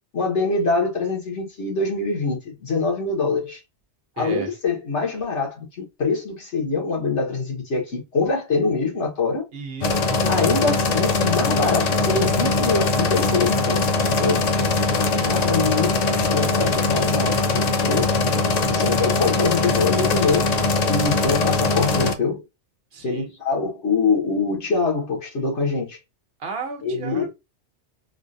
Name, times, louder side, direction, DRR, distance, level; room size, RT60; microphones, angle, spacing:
voice 1, 0.1-3.6 4.2-9.4 10.3-14.4 15.3-18.1 18.7-20.5 20.9-22.4 23.0-26.0 26.8-27.3, left 4 dB, 75° left, 1.8 m, -24 dB
voice 2, 4.2-4.5 9.5-10.4 15.1-15.4 22.9-23.3 26.4-27.3, right 4 dB, 60° right, 1.0 m, -34 dB
sound 1, 9.8-22.1, left 3 dB, 60° left, 0.4 m, -21 dB
3.9 x 2.5 x 2.6 m
omnidirectional pair, 1.2 m